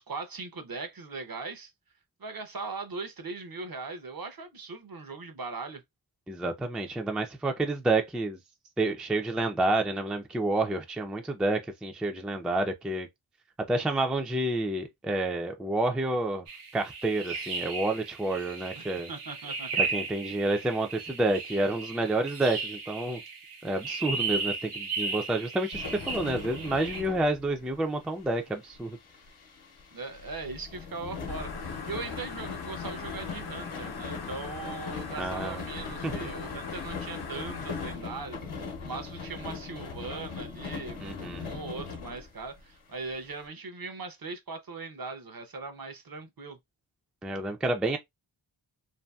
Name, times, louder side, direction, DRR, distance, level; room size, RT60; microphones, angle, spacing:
voice 1, 0.0-1.7 2.2-5.8 18.8-19.9 29.9-46.6, right 4 dB, 45° right, 0.6 m, -40 dB
voice 2, 6.3-8.4 8.8-13.1 13.7-16.4 16.7-19.1 19.8-23.2 23.6-29.0 35.2-35.6 36.0-36.3 41.0-41.5 47.2-48.0, right 2 dB, ahead, 0.3 m, -29 dB
sound 1, 16.5-27.0, right 4 dB, 85° right, 0.8 m, -35 dB
sound 2, 25.7-42.6 43.1-43.2 43.4-43.5, left 5 dB, 80° left, 0.8 m, -40 dB
sound 3, 31.3-38.0, left 6 dB, 50° left, 0.6 m, -42 dB
2.7 x 2.6 x 2.3 m
wide cardioid pair, 75°, 49 cm